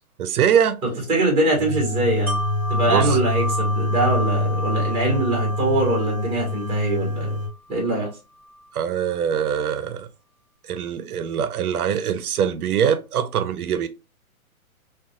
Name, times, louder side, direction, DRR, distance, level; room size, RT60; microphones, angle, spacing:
voice 1, 0.2-0.8 2.9-3.2 8.7-10.1 10.6-13.9, right 8 dB, 85° right, 0.5 m, -23 dB
voice 2, 0.8-2.4 2.7-7.4 7.7-8.1, right 2 dB, 15° right, 1.3 m, -23 dB
sound 1, 1.6-7.5, left 1 dB, 35° right, 1.5 m, -25 dB
Wind chime, 2.3-8.1 8.5-8.6, equal, 5° left, 0.8 m, -32 dB
3.7 x 2.3 x 2.5 m
hypercardioid pair, 155°, 43 cm